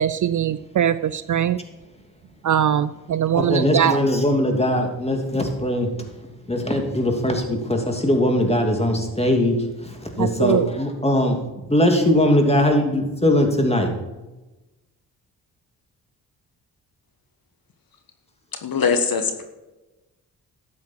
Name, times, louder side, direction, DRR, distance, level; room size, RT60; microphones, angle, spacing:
voice 1, 0.0-1.6 2.4-4.0 10.2-10.7, right 9 dB, 45° right, 15 dB, 0.6 m, -21 dB
voice 2, 3.3-5.9 6.5-11.4 11.7-13.9, left 1 dB, 15° left, 3 dB, 3.0 m, -20 dB
voice 3, 18.6-19.4, left 5 dB, 55° left, 7 dB, 1.4 m, -21 dB
12.5 x 8.5 x 4.7 m, 1.1 s
hypercardioid pair, 45°, 43 cm